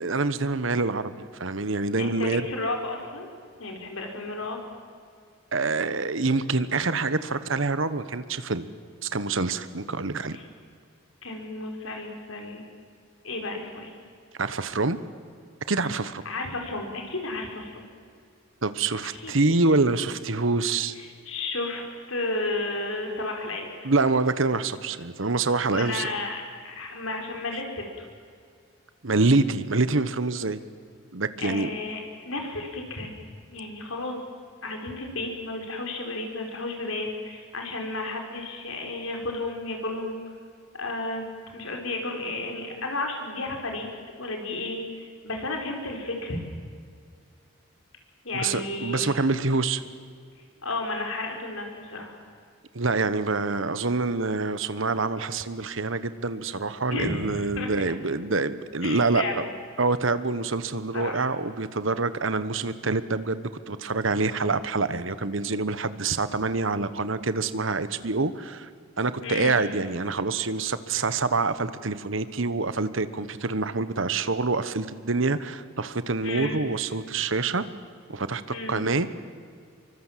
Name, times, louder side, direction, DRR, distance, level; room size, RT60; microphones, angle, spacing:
voice 1, 0.0-2.4 5.5-8.7 9.0-10.4 14.4-15.0 15.7-16.2 18.6-20.9 23.8-26.1 29.0-30.6 31.1-31.7 48.3-49.8 52.7-59.2 59.8-68.7 69.0-77.6 78.1-78.4 78.7-79.1, right 3 dB, 65° right, 13 dB, 1.2 m, -26 dB
voice 2, 2.0-3.3 3.6-4.6 10.3-10.5 11.2-12.6 13.2-13.9 16.2-17.8 19.1-19.4 20.9-23.7 25.7-28.0 31.4-33.1 33.5-34.2 34.6-40.2 40.8-41.3 41.5-43.9 44.2-46.4 48.2-49.1 50.6-52.1 56.9-57.7 58.8-59.5 60.9-61.2 69.2-69.6 76.2-76.6 78.5-78.8, left 2 dB, 75° left, 2 dB, 5.0 m, -32 dB
25.0 x 24.5 x 7.5 m, 2.2 s
head